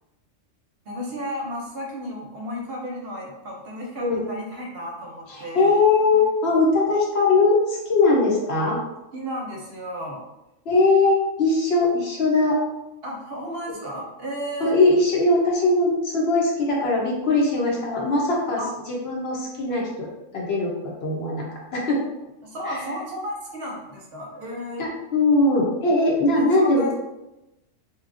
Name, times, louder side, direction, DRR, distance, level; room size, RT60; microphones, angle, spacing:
voice 1, 0.9-5.8 6.1-6.2 9.1-10.3 13.0-14.8 18.6-18.7 22.4-24.9 26.4-26.9, equal, 60° right, -1 dB, 0.7 m, -33 dB
voice 2, 5.3-8.8 10.7-12.6 13.7-13.8 14.6-18.6 18.9-20.7 21.0-22.0 22.7-22.8 24.8-26.9, left 2 dB, 65° left, -2 dB, 0.8 m, -20 dB
2.9 x 2.2 x 2.5 m, 0.96 s
omnidirectional pair, 1.2 m